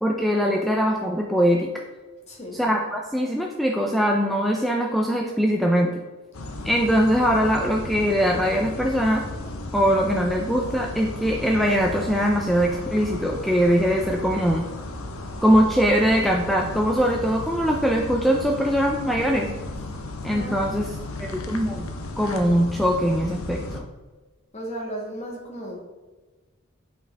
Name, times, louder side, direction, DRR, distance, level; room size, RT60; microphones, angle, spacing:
voice 1, 0.0-1.7 2.6-5.9 6.6-9.2 9.7-14.6 15.4-19.5 20.2-20.9 21.2-21.9 22.2-23.8, equal, ahead, 0 dB, 0.4 m, -22 dB
voice 2, 2.3-2.6 20.3-21.0 24.5-25.8, equal, 30° left, -2 dB, 1.7 m, -35 dB
sound 1, 6.3-23.8, left 2 dB, 80° left, 0.8 m, -35 dB
8.5 x 4.4 x 3.4 m, 1.2 s
head